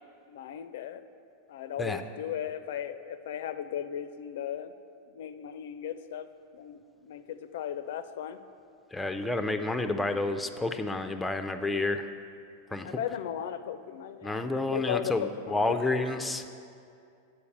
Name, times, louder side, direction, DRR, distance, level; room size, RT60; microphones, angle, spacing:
voice 1, 0.3-1.0 1.5-4.7 5.1-6.3 6.5-8.4 12.8-16.0, left 9 dB, 75° left, 12 dB, 0.4 m, -36 dB
voice 2, 8.9-12.1 12.7-13.0 14.2-16.5, left 2 dB, 5° left, 7 dB, 0.4 m, -30 dB
8.5 x 4.6 x 7.1 m, 2.4 s
supercardioid pair, 140°, 0 cm